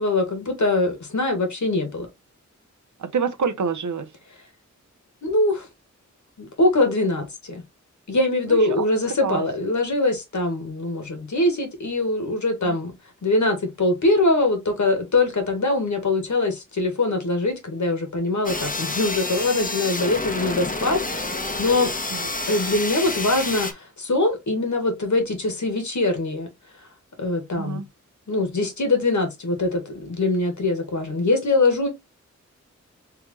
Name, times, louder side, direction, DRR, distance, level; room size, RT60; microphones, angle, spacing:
voice 1, 0.0-2.1 5.2-5.7 6.4-7.6 8.1-12.9 13.2-21.9 22.5-26.5 27.2-27.8 28.3-31.9, left 2 dB, 70° left, 2.2 m, -23 dB
voice 2, 3.0-4.1 8.5-8.9 9.2-9.4 12.6-12.8 22.1-22.3 27.5-27.8, right 6 dB, 70° right, 0.8 m, -27 dB
sound 1, 18.4-23.7, left 2 dB, 25° left, 1.2 m, -29 dB
4.7 x 3.3 x 3.2 m
wide cardioid pair, 75°, 31 cm